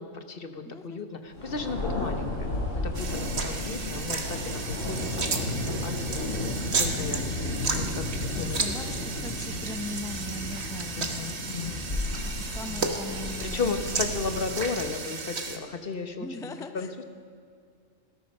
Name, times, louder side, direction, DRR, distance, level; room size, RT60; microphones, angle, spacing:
voice 1, 0.0-2.5 2.8-8.1 8.4-8.7 11.0-12.2 12.7-12.9 13.4-17.0, left 4 dB, 50° left, 8 dB, 1.2 m, -35 dB
voice 2, 0.7-1.0 8.3-11.6 12.4-13.9 16.2-17.0, left 1 dB, 5° left, 7 dB, 0.4 m, -40 dB
Thunder, 1.3-15.0, left 2 dB, 85° left, 4.1 m, -33 dB
sound 1, 2.9-15.6, right 4 dB, 60° right, 1.5 m, -34 dB
19.0 x 13.0 x 5.4 m, 2.3 s
omnidirectional pair, 1.3 m